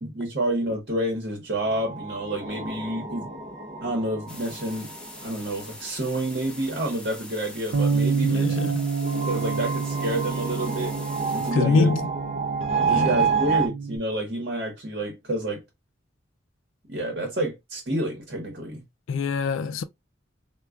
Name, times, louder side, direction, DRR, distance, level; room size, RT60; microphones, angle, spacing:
voice 1, 0.0-3.4 3.8-4.9 5.2-8.7 9.0-10.9 11.3-11.9 12.9-15.6 16.9-18.8, right 1 dB, 50° right, 1.0 m, -29 dB
sound 1, 1.6-6.9 8.4-13.7, right 5 dB, 30° right, 0.5 m, -30 dB
sound 2, 4.3-11.5, left 2 dB, 5° left, 0.7 m, -43 dB
Bass guitar, 7.7-14.0, right 5 dB, 90° right, 0.4 m, -28 dB
voice 2, 8.2-8.9 11.5-12.0 12.8-13.1 19.1-19.8, left 4 dB, 85° left, 0.4 m, -24 dB
4.4 x 2.2 x 2.3 m
head